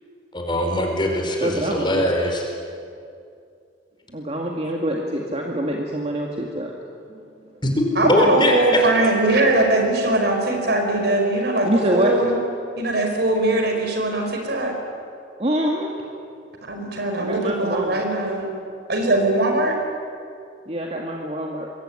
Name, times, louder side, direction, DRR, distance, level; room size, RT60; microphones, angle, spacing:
voice 1, 0.3-2.4 7.6-8.8, left 1 dB, 25° left, 2 dB, 4.9 m, -21 dB
voice 2, 1.4-2.1 4.1-6.8 7.1-7.2 11.6-12.2 15.4-15.9 17.2-18.0 20.7-21.7, right 1 dB, 35° right, 0 dB, 2.2 m, -25 dB
voice 3, 8.0-12.4 12.8-14.7 16.7-18.5 18.9-19.8, right 2 dB, 60° right, 3 dB, 5.2 m, -21 dB
26.0 x 22.5 x 9.9 m, 2.4 s
head